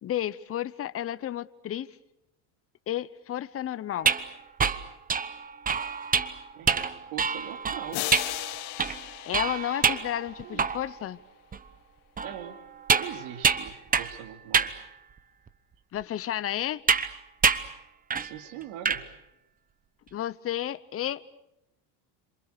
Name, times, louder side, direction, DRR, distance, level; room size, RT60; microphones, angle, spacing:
voice 1, 0.0-1.9 2.9-4.1 9.2-11.2 15.9-16.8 20.1-21.2, left 12 dB, 30° left, 15 dB, 0.9 m, -32 dB
sound 1, 3.9-11.1 11.5-11.6 12.2-14.2 14.5-14.8 15.5-15.6 16.9-17.1 17.4-17.7 18.1-18.3 18.6-19.0, right 6 dB, 20° right, 0.9 m, -27 dB
voice 2, 6.5-8.0 10.4-10.6 12.2-12.6 12.9-14.7 18.2-19.0, right 10 dB, 85° right, 5 dB, 2.8 m, -42 dB
sound 2, 7.9-10.6, left 17 dB, 65° left, 1.5 m, -36 dB
28.0 x 26.5 x 6.8 m, 0.83 s
cardioid pair, 140°, 43 cm